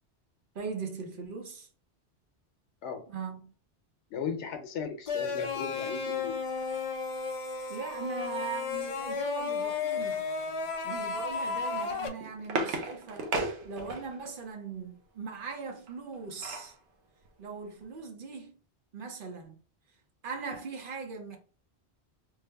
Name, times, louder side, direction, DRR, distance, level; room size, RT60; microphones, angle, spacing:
voice 1, 0.5-1.7 3.1-3.5 7.7-10.3 10.8-13.3 13.6-16.7 17.4-18.6 18.9-19.6 20.2-21.4, right 5 dB, 55° right, 0.7 m, -40 dB
voice 2, 4.1-6.4, left 6 dB, 90° left, 0.9 m, -37 dB
sound 1, 5.1-12.1, left 5 dB, 60° left, 0.3 m, -33 dB
sound 2, 12.2-14.3 15.9-16.8 17.3-17.4 17.6-17.9, right 2 dB, 90° right, 1.0 m, -35 dB
3.2 x 2.0 x 3.3 m
omnidirectional pair, 1.1 m